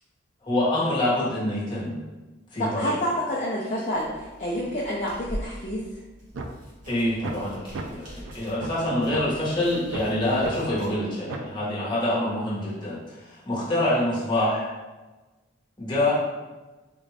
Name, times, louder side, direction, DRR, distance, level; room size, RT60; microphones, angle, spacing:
voice 1, 0.4-2.0 2.5-2.9 6.9-14.7 15.8-16.1, left 1 dB, 25° left, -7 dB, 1.2 m, -26 dB
voice 2, 2.6-5.8, equal, 40° left, -6 dB, 0.5 m, -28 dB
sound 1, 3.9-10.9, equal, 45° right, 1.1 m, -43 dB
sound 2, 6.3-6.5 6.9-7.0 7.2-7.4 7.7-7.9 8.3-8.4 8.6-8.8 9.1-9.2 9.6-10.0 10.4-10.5 10.9-11.0 11.3-11.5, right 3 dB, 85° right, 0.4 m, -34 dB
3.7 x 2.5 x 3.2 m, 1.2 s
head